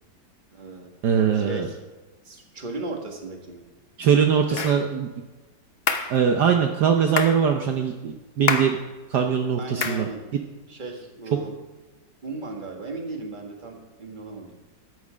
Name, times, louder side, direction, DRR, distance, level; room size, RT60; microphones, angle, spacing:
voice 1, 0.5-0.9 1.1-1.8 2.3-3.6 4.5-4.9 9.6-10.2 10.7-11.6 12.2-14.5, right 3 dB, 25° right, 2 dB, 1.8 m, -36 dB
voice 2, 1.0-1.7 4.0-5.1 6.1-8.8 9.1-10.1, right 7 dB, 65° right, 4 dB, 1.3 m, -21 dB
sound 1, 4.6-4.8 5.9-6.2 7.2-7.4 8.5-8.8 9.8-10.1, left 5 dB, 45° left, 0.8 m, -26 dB
14.0 x 9.7 x 5.0 m, 1.2 s
omnidirectional pair, 2.0 m